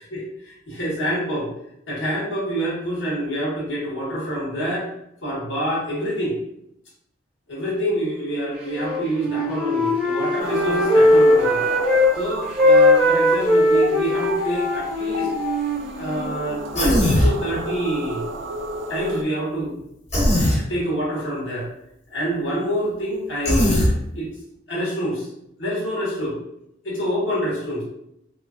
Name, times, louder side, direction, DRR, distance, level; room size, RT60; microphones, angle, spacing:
voice 1, 0.1-1.5 1.9-4.9 5.2-6.4 7.5-11.6 12.1-15.3 16.0-18.3 18.9-19.8 20.6-21.7 22.1-23.8 24.1-24.3 24.7-25.3 25.6-26.4 26.8-27.8, right 1 dB, 85° left, -6 dB, 1.2 m, -27 dB
Wind instrument woodwind instrument, 8.7-12.1 12.4-16.3, left 1 dB, 5° right, 0.6 m, -19 dB
sound 1, 10.4-19.2, right 1 dB, 75° right, 0.3 m, -32 dB
Human voice, 16.7-17.3 20.1-20.6 23.4-23.9, left 1 dB, 35° left, 0.9 m, -18 dB
3.1 x 2.4 x 2.4 m, 0.79 s
head